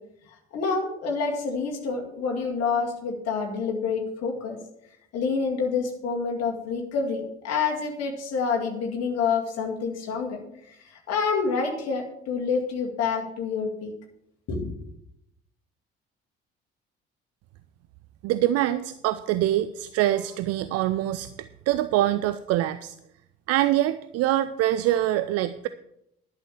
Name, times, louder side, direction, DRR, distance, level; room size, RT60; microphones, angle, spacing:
voice 1, 0.5-4.6 5.1-13.9 14.5-14.7, left 5 dB, 50° left, 0 dB, 2.1 m, -28 dB
voice 2, 18.2-21.3 21.7-23.0 23.5-25.7, right 14 dB, 50° right, 13 dB, 0.5 m, -24 dB
11.0 x 6.7 x 7.3 m, 0.78 s
figure-of-eight pair, 45°, 31 cm